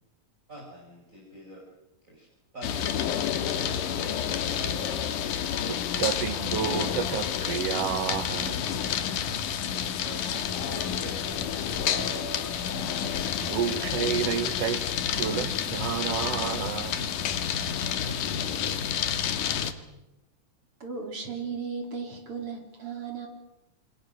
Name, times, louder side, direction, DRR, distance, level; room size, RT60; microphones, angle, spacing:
voice 1, 0.5-1.7 2.0-2.3 2.5-5.5 9.6-13.1, right 2 dB, 20° right, 5.0 m, -44 dB
sound 1, 2.6-19.7, left 8 dB, 70° left, 2.8 m, -29 dB
voice 2, 5.7-8.8 13.4-17.2, right 9 dB, 60° right, 1.8 m, -31 dB
voice 3, 20.8-23.3, right 5 dB, 40° right, 4.6 m, -35 dB
28.0 x 25.5 x 6.4 m
omnidirectional pair, 4.0 m